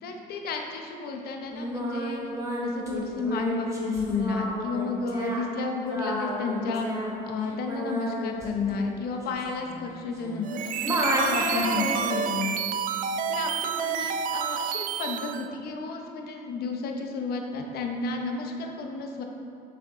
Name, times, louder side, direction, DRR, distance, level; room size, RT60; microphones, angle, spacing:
voice 1, 0.0-2.2 2.6-6.9 7.2-12.7 13.3-19.2, left 4 dB, 65° left, 3 dB, 0.9 m, -32 dB
Singing, 1.5-10.5 10.8-12.3, equal, 20° right, 1.4 m, -31 dB
sound 1, 10.4-15.5, right 8 dB, 55° right, 0.4 m, -29 dB
6.9 x 6.5 x 3.8 m, 2.4 s
cardioid pair, 110°, 17 cm